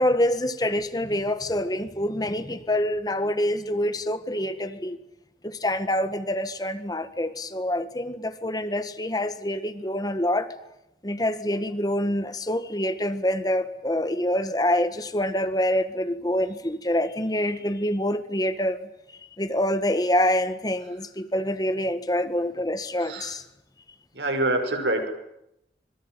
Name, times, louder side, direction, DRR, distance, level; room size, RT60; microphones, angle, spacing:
voice 1, 0.0-5.0 5.4-10.5 11.0-18.8 19.4-23.4, left 1 dB, 20° left, 10 dB, 1.7 m, -26 dB
voice 2, 23.0-23.4 24.1-25.1, right 2 dB, 90° right, 6 dB, 5.8 m, -26 dB
26.0 x 22.5 x 9.1 m, 0.84 s
head